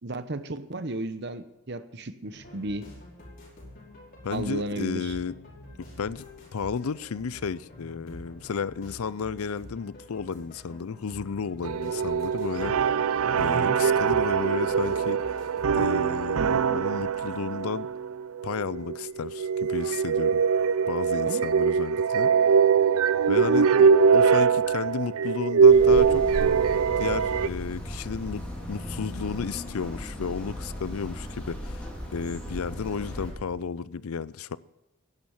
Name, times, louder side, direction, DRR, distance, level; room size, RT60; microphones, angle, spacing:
voice 1, 0.0-2.9 4.3-5.1 13.5-13.8 21.2-21.5, right 2 dB, 50° right, 1.0 m, -34 dB
sound 1, 2.3-16.3, left 1 dB, 40° left, 5.0 m, -47 dB
voice 2, 4.2-5.4 6.0-6.2 6.5-13.0 13.4-15.4 15.7-17.9 18.4-20.4 20.9-22.3 23.3-26.3 27.0-34.6, left 5 dB, 80° left, 0.5 m, -33 dB
sound 2, 11.6-27.5, right 6 dB, 80° right, 0.5 m, -22 dB
sound 3, 25.7-33.3, left 1 dB, 5° left, 4.0 m, -37 dB
12.0 x 11.0 x 7.2 m
head